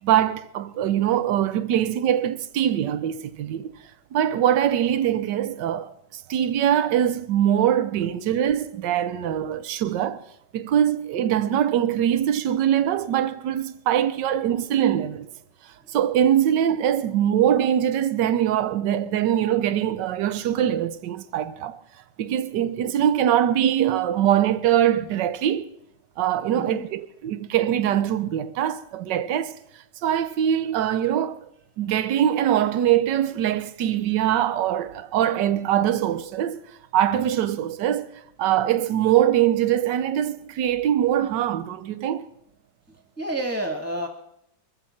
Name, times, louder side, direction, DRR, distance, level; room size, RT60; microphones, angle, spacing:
voice 1, 0.0-3.7 4.1-10.2 10.5-15.3 15.9-21.8 22.2-25.7 26.2-29.6 30.0-31.4 31.8-36.6 36.9-38.1 38.4-42.3, right 10 dB, 70° right, 1.4 m, -23 dB
voice 2, 42.9-44.1, right 1 dB, 10° left, 1.6 m, -30 dB
24.0 x 14.0 x 4.4 m
omnidirectional pair, 2.1 m